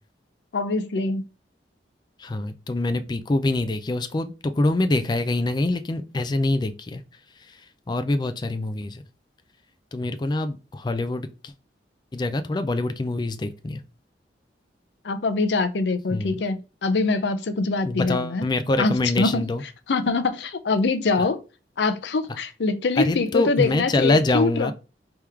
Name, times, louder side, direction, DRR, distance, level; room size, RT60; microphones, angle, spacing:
voice 1, 0.5-1.2 15.0-18.5 18.8-19.4 19.9-21.4 21.8-24.7, left 3 dB, 75° left, 0.6 m, -24 dB
voice 2, 2.2-7.0 7.5-7.6 7.9-9.0 9.9-11.5 12.1-13.8 16.1-16.4 17.8-19.6 21.2-21.3 23.0-24.7, left 2 dB, 25° left, 0.4 m, -25 dB
3.5 x 3.0 x 4.7 m
head